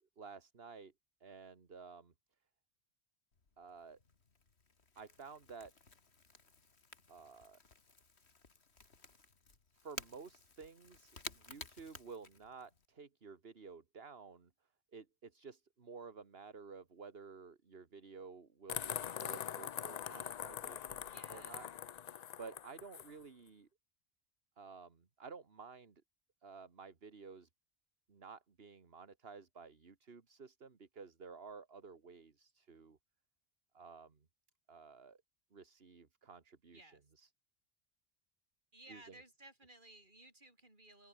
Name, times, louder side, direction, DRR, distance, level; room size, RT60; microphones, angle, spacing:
voice 1, 0.2-0.9 1.2-2.1 3.6-4.0 5.0-5.7 7.1-7.6 9.8-14.5 14.9-21.7 22.4-23.7 24.6-26.0 26.4-27.5 28.1-33.0 33.7-34.3 34.7-35.2 35.5-37.3 38.9-39.2, right 5 dB, 65° right, 2.0 m, -53 dB
Crackle / Crack, 3.3-12.9, left 4 dB, 75° left, 2.5 m, -54 dB
sound 1, 18.7-23.1, left 9 dB, 50° left, 0.5 m, -43 dB
voice 2, 21.0-21.7 36.7-37.1 38.7-41.1, right 1 dB, 45° right, 5.1 m, -58 dB
open air
omnidirectional pair, 1.1 m